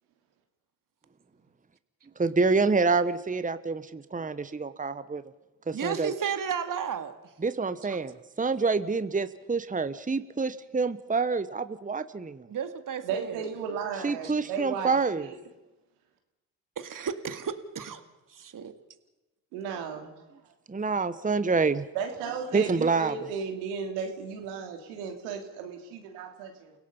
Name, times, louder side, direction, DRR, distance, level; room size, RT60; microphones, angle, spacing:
voice 1, 2.2-5.2 5.7-6.1 7.4-12.5 13.9-15.3 20.7-21.8 22.5-23.3, right 4 dB, 20° right, 12 dB, 1.2 m, -27 dB
voice 2, 5.7-7.2 12.5-13.4 14.2-14.3 16.8-18.0 18.3-18.7, right 7 dB, 50° right, 9 dB, 2.2 m, -33 dB
voice 3, 13.0-15.3 19.5-20.1 21.9-26.7, right 6 dB, 90° right, 4 dB, 3.0 m, -35 dB
30.0 x 17.0 x 5.6 m, 1.0 s
hypercardioid pair, 50°, 40 cm